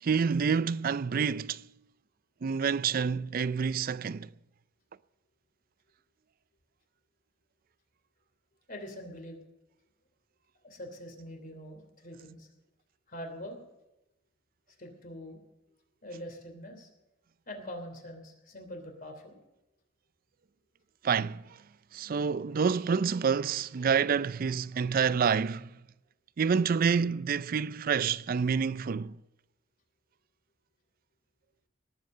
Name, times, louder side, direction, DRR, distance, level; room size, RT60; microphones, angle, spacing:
voice 1, 0.0-1.7 2.4-4.3 21.0-21.6 21.9-25.7 26.4-29.2, right 6 dB, 50° right, 0.4 m, -28 dB
voice 2, 8.7-9.4 10.6-12.5 13.1-13.6 14.8-15.4 16.0-16.9 17.5-19.4, equal, 50° left, 3.1 m, -43 dB
18.5 x 8.1 x 7.6 m
head